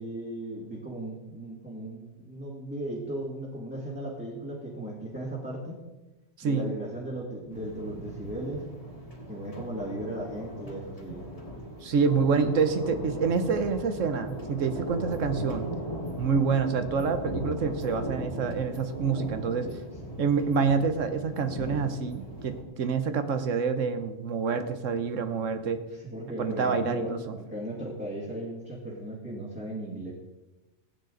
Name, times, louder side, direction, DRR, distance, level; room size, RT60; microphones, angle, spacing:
voice 1, 0.0-5.8 6.4-8.6 9.3-11.3 19.6-19.8 25.9-30.1, right 1 dB, 10° right, -6 dB, 2.1 m, -36 dB
voice 2, 6.4-6.7 11.8-15.7 16.2-19.7 20.2-25.8 26.4-27.4, right 5 dB, 80° right, 9 dB, 1.3 m, -27 dB
sound 1, 7.5-22.6, equal, 30° left, 2.2 m, -38 dB
16.0 x 9.4 x 3.9 m, 1.1 s
omnidirectional pair, 1.3 m